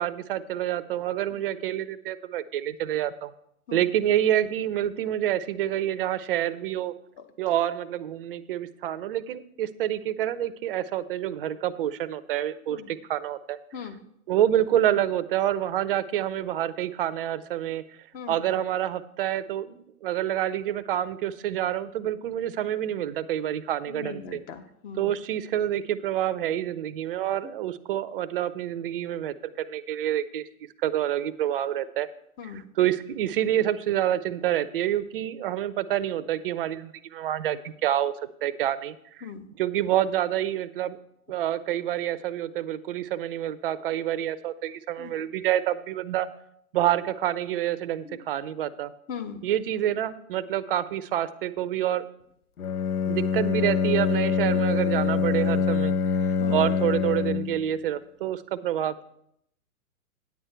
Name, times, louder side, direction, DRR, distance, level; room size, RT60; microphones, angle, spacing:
voice 1, 0.0-3.3 3.7-6.9 7.4-13.9 14.3-17.8 18.3-24.4 25.0-30.5 30.8-32.1 32.4-38.1 38.4-39.3 39.6-41.0 41.3-46.3 46.7-48.9 49.4-52.0 53.1-55.9 56.2-59.0, right 11 dB, 40° right, 16 dB, 0.5 m, -27 dB
voice 2, 23.9-25.0 32.4-32.6 39.2-39.5 45.0-45.1 48.1-48.2 49.1-49.4 56.4-56.6, left 7 dB, 20° left, 8 dB, 0.7 m, -38 dB
Bowed string instrument, 52.6-57.7, left 6 dB, 85° left, 0.7 m, -25 dB
9.6 x 8.0 x 4.5 m, 0.74 s
hypercardioid pair, 125°, 43 cm